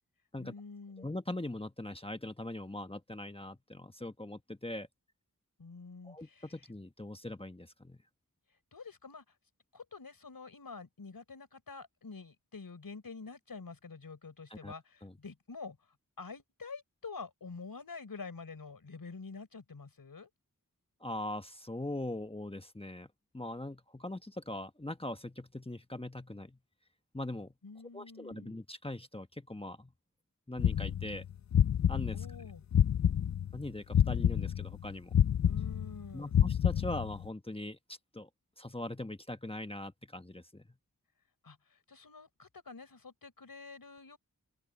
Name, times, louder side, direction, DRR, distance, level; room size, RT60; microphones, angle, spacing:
voice 1, 0.4-1.1 5.6-6.6 8.7-9.2 9.7-15.8 16.2-20.3 27.6-28.6 32.1-32.6 35.4-36.4 41.4-44.2, left 4 dB, 75° left, 4.3 m, -47 dB
voice 2, 1.0-4.9 6.0-8.0 14.5-14.7 15.0-15.1 21.0-23.1 23.3-26.6 27.1-27.5 27.9-29.9 30.5-31.2 31.9-32.3 33.5-35.1 36.1-38.3 38.6-40.6, left 1 dB, 15° left, 1.3 m, -41 dB
sound 1, 30.6-33.6 33.9-37.3, left 9 dB, 55° left, 0.5 m, -28 dB
open air
cardioid pair, 40°, 35 cm